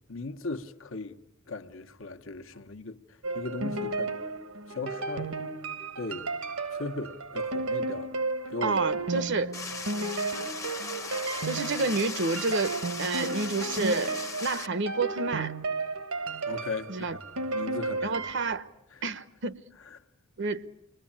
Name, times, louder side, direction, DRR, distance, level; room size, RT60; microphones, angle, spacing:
voice 1, 0.1-1.2 1.5-4.2 4.7-5.3 6.0-6.3 6.7-8.2 8.5-8.8 9.1-9.3 16.5-18.2 18.9-19.0 19.9-20.0, left 3 dB, 60° left, 1.2 m, -38 dB
sound 1, 3.2-18.5, right 3 dB, 75° right, 1.5 m, -33 dB
voice 2, 8.6-9.5 11.4-15.5 16.9-17.2 18.0-18.7 19.0-19.6 20.4-20.7, right 3 dB, 55° right, 1.0 m, -29 dB
sound 2, 9.5-14.7, left 4 dB, 15° left, 0.9 m, -38 dB
30.0 x 22.0 x 8.8 m
head